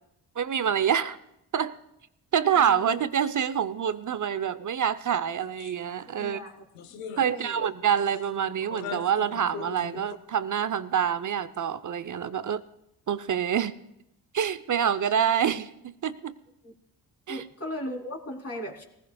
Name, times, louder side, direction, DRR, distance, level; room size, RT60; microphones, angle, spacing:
voice 1, 0.4-1.2 1.5-1.7 2.3-6.4 7.2-12.6 13.1-13.7 14.3-16.3 17.3-17.4, right 8 dB, 40° right, 13 dB, 0.8 m, -26 dB
voice 2, 2.5-3.0 6.2-6.6 7.2-7.6 16.6-16.7 17.3-18.8, left 1 dB, 30° left, 0 dB, 3.3 m, -37 dB
sound 1, 5.6-5.8 6.1-6.2 6.7-7.7 8.0-8.3 8.6-10.2, left 7 dB, 90° left, 0.9 m, -40 dB
19.5 x 15.0 x 2.4 m, 0.84 s
hypercardioid pair, 40°, 48 cm